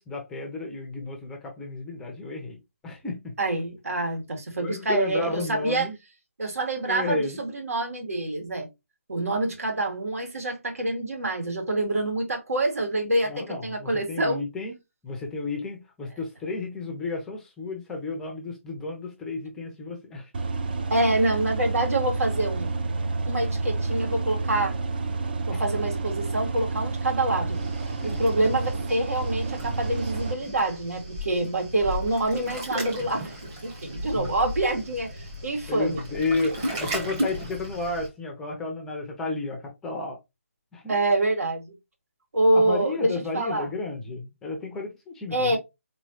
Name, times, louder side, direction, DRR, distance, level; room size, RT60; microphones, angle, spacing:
voice 1, 0.0-2.6 2.8-3.3 4.6-5.9 6.9-7.4 13.3-14.7 15.0-20.3 25.5-25.6 28.0-28.2 34.1-34.3 35.7-40.2 40.7-40.9 42.5-45.6, left 3 dB, 5° left, 0.5 m, -32 dB
voice 2, 3.4-5.9 6.4-8.7 9.1-14.5 20.9-22.7 23.3-24.8 25.5-27.6 28.0-36.0 40.9-41.7 42.3-43.7 45.3-45.6, right 2 dB, 80° right, 1.9 m, -26 dB
sound 1, 20.3-30.4, right 3 dB, 40° right, 0.6 m, -29 dB
Waves surf, 27.5-38.1, equal, 15° right, 0.9 m, -35 dB
4.1 x 3.1 x 2.7 m
hypercardioid pair, 165°, 8 cm